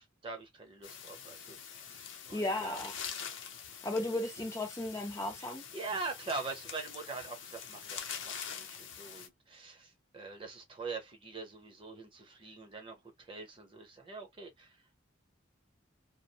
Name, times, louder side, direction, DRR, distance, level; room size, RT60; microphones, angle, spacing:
voice 1, 0.0-2.9 5.4-14.8, right 3 dB, 25° right, 0.7 m, -43 dB
sound 1, 0.8-9.3, left 7 dB, 70° left, 0.6 m, -45 dB
voice 2, 2.3-2.9 3.8-5.6, left 1 dB, 15° left, 0.4 m, -35 dB
2.5 x 2.0 x 2.7 m
head